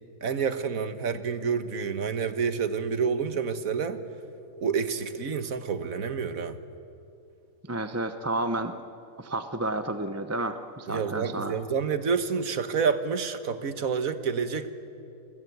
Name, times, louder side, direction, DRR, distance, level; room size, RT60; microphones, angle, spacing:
voice 1, 0.2-4.0 4.6-6.6 10.9-14.7, right 6 dB, 80° right, 10 dB, 1.8 m, -28 dB
voice 2, 7.7-8.8 9.2-11.6, right 2 dB, 15° right, 9 dB, 0.8 m, -31 dB
29.0 x 21.0 x 9.4 m, 2.7 s
omnidirectional pair, 1.4 m